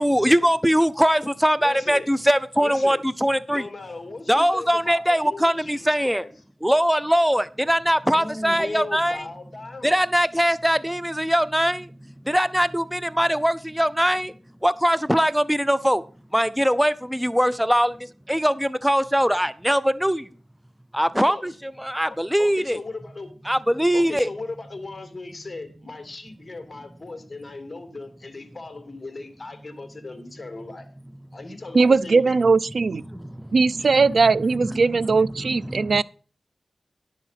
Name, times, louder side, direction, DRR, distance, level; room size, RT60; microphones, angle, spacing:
voice 1, 0.0-3.7 4.3-6.2 6.6-9.2 9.8-14.4 14.6-16.0 16.3-20.3 20.9-22.8 23.4-24.3 33.1-33.5 33.8-33.9 34.6-36.0, equal, 5° right, 0.5 m, -22 dB
voice 2, 1.6-2.1 2.6-3.0 3.5-6.3 8.1-10.0 21.3-21.6 22.4-23.3 23.9-30.9 31.3-32.5, left 3 dB, 30° left, 2.7 m, -37 dB
voice 3, 31.7-33.0 33.5-36.0, right 4 dB, 60° right, 0.4 m, -19 dB
11.0 x 7.0 x 5.6 m
wide cardioid pair, 75°, 0 cm